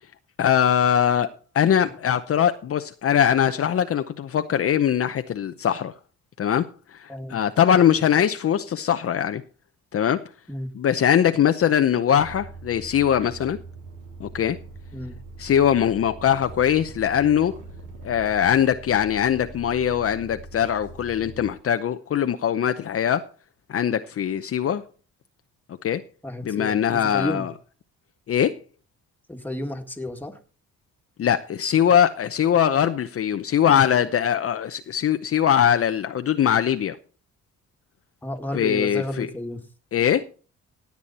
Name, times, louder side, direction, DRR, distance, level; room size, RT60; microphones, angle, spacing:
voice 1, 0.4-1.3 1.5-5.9 6.4-9.4 9.9-10.2 10.8-13.6 14.2-14.6 15.4-17.5 18.0-23.3 23.7-24.8 25.7-26.0 26.4-27.5 28.3-28.5 31.2-37.0 38.5-39.3 39.9-40.3, left 9 dB, 50° left, 0.7 m, -21 dB
voice 2, 7.1-7.4 10.5-10.7 14.9-15.2 26.2-27.5 29.3-30.4 38.2-39.6, left 1 dB, 5° left, 1.9 m, -32 dB
sound 1, 12.2-21.5, right 3 dB, 80° right, 3.9 m, -42 dB
16.5 x 8.4 x 4.2 m
cardioid pair, 90°, 30 cm